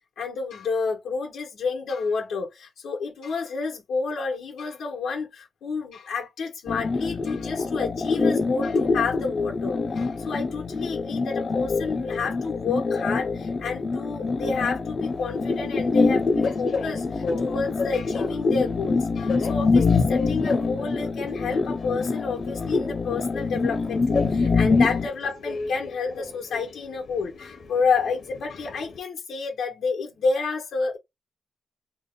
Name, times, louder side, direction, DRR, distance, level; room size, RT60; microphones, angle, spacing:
voice 1, 0.2-31.0, left 4 dB, 85° left, 1.6 m, -29 dB
sound 1, 6.7-25.1, left 4 dB, 30° left, 0.6 m, -25 dB
Train, 15.0-29.0, left 4 dB, 50° left, 1.1 m, -36 dB
3.5 x 2.5 x 3.7 m
wide cardioid pair, 165°, 0 cm